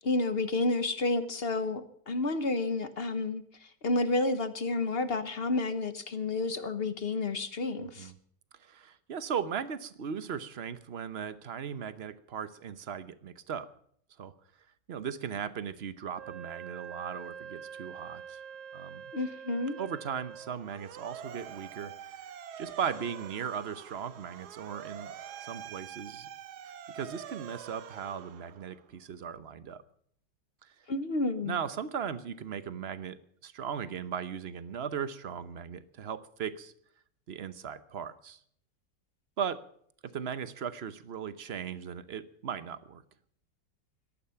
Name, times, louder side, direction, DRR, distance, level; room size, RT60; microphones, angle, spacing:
voice 1, 0.0-8.1 19.1-19.8 30.9-31.5, left 2 dB, 40° left, 1.0 m, -30 dB
voice 2, 7.8-8.1 8.6-13.7 14.2-14.3 14.9-18.4 18.7-19.0 19.8-25.1 25.4-26.3 26.6-29.8 30.6-30.7 31.4-36.7 37.3-38.4 39.4-39.6 40.0-43.0, right 7 dB, 50° right, 0.8 m, -38 dB
Wind instrument woodwind instrument, 16.1-20.6, right 8 dB, 90° right, 1.8 m, -45 dB
Motor vehicle (road) / Siren, 20.3-28.9, right 9 dB, 65° right, 1.3 m, -46 dB
18.0 x 13.0 x 5.7 m
omnidirectional pair, 2.0 m